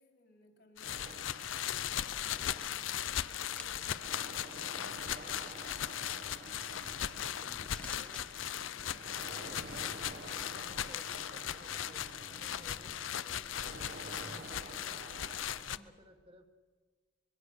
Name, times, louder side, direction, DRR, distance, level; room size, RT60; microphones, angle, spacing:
voice 1, 0.0-1.4 1.8-4.4, equal, 55° left, 4 dB, 3.5 m, -62 dB
sound 1, 0.8-15.8, left 10 dB, 90° left, 0.6 m, -38 dB
sound 2, 0.8-15.8, right 2 dB, 55° right, 1.2 m, -50 dB
sound 3, 2.1-2.7 3.5-3.9 5.1-5.7 6.7-7.3 7.6-8.2, left 2 dB, 5° left, 0.9 m, -52 dB
voice 2, 7.0-9.8 10.4-13.5 13.8-15.0 15.6-16.5, equal, 30° right, 4 dB, 1.5 m, -59 dB
25.0 x 21.5 x 6.6 m, 1.5 s
head